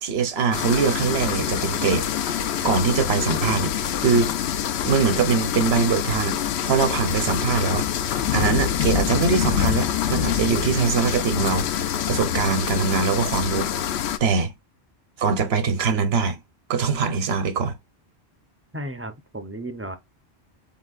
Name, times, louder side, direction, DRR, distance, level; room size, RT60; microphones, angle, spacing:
voice 1, 0.0-4.3 4.8-7.8 8.3-14.5 15.2-16.4 16.7-17.8, right 5 dB, 70° right, 1.0 m, -23 dB
sound 1, 0.5-14.2, left 9 dB, 80° left, 0.8 m, -25 dB
voice 2, 18.7-20.0, right 1 dB, 20° right, 0.4 m, -34 dB
4.3 x 3.8 x 2.4 m
omnidirectional pair, 1.1 m